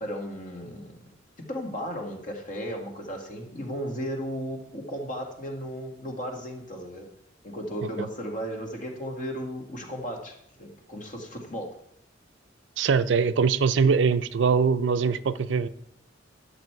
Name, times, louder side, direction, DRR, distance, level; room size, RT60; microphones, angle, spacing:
voice 1, 0.0-1.0 1.5-7.1 7.4-11.7, equal, 45° left, 2 dB, 1.7 m, -35 dB
voice 2, 12.8-15.7, right 5 dB, 70° right, 13 dB, 0.4 m, -22 dB
10.5 x 6.9 x 4.5 m, 0.75 s
head